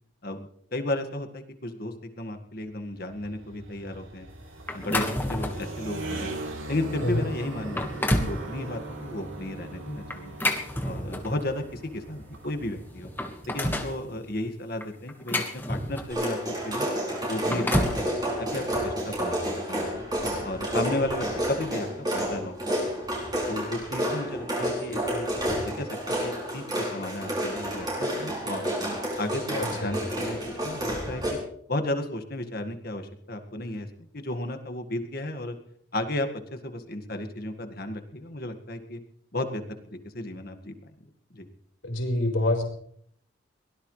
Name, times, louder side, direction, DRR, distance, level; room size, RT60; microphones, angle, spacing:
voice 1, 0.2-4.3 4.7-6.3 6.7-10.4 10.8-13.1 13.5-16.4 16.6-16.9 17.2-20.0 20.4-21.9 22.1-22.6 23.5-25.3 25.8-28.8 29.2-31.4 31.7-33.9 34.1-35.6 35.9-39.0 39.3-39.6 39.9-40.9 41.3-41.5, left 1 dB, 50° left, 6 dB, 1.9 m, -34 dB
Scooter drive by, 2.8-14.4, right 2 dB, 85° right, 3.4 m, -40 dB
sound 1, 4.7-5.7 6.3-6.5 7.1-7.2 7.6-8.4 10.1-11.4 12.5-12.6 12.9-14.0 14.8-16.2 17.2-18.0, left 1 dB, 10° left, 1.6 m, -29 dB
sound 2, 16.1-31.3, equal, 20° right, 7.0 m, -30 dB
voice 2, 29.6-29.9 41.8-42.6, left 1 dB, 75° left, 1 dB, 4.9 m, -26 dB
23.5 x 17.5 x 3.3 m, 0.66 s
head